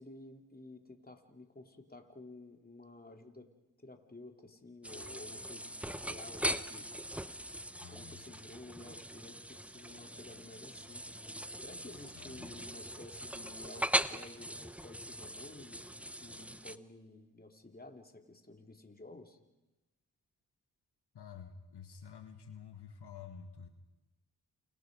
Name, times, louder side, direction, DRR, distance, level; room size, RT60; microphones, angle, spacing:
voice 1, 0.0-3.5 3.8-6.9 7.9-11.0 11.6-15.9 16.2-19.4, left 2 dB, 20° left, 4 dB, 3.1 m, -52 dB
sound 1, 4.8-16.8, equal, 5° right, 1.0 m, -40 dB
voice 2, 7.8-8.2 12.2-12.5 21.1-23.7, left 7 dB, 70° left, 6 dB, 1.9 m, -50 dB
29.0 x 27.0 x 5.3 m, 1.0 s
supercardioid pair, 45°, 41 cm